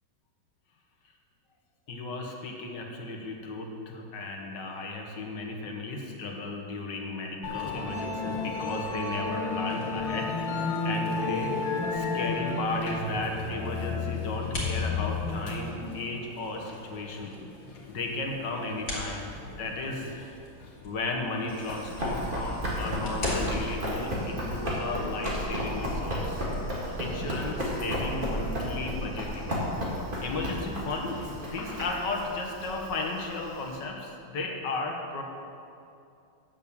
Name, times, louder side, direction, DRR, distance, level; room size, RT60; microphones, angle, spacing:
voice 1, 1.9-10.4 10.8-11.5 11.9-17.4 17.9-20.2 20.8-29.5 29.9-35.2, left 3 dB, 70° left, 2 dB, 1.7 m, -35 dB
Musical instrument, 7.4-22.9, left 3 dB, 90° left, 1.9 m, -33 dB
sound 1, 11.3-28.9, left 1 dB, 55° left, 2.6 m, -44 dB
Run, 21.5-33.8, equal, 30° right, 2.1 m, -33 dB
8.9 x 7.3 x 6.8 m, 2.6 s
omnidirectional pair, 2.0 m